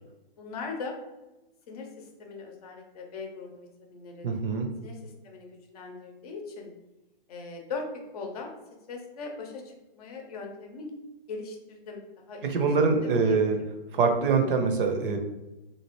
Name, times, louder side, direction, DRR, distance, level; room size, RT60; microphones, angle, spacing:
voice 1, 0.3-1.0 1.7-4.3 4.8-6.7 7.3-7.9 8.1-8.5 8.9-10.9 11.3-12.7 13.0-13.7, left 4 dB, 40° left, 2 dB, 0.6 m, -40 dB
voice 2, 4.2-4.7 12.4-13.6 13.9-15.2, right 4 dB, 65° right, 5 dB, 0.6 m, -24 dB
2.8 x 2.4 x 3.0 m, 1.0 s
hypercardioid pair, 145°, 29 cm